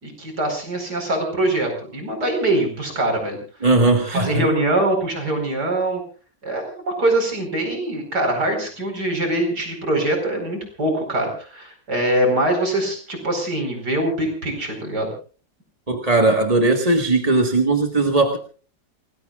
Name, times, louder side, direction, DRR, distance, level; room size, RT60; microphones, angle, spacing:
voice 1, 0.0-3.4 4.1-6.0 6.4-15.1, right 1 dB, 65° right, 4 dB, 5.3 m, -23 dB
voice 2, 3.6-4.5 15.9-18.4, right 2 dB, 20° right, 3 dB, 1.6 m, -18 dB
28.5 x 20.0 x 2.4 m, 0.38 s
omnidirectional pair, 1.9 m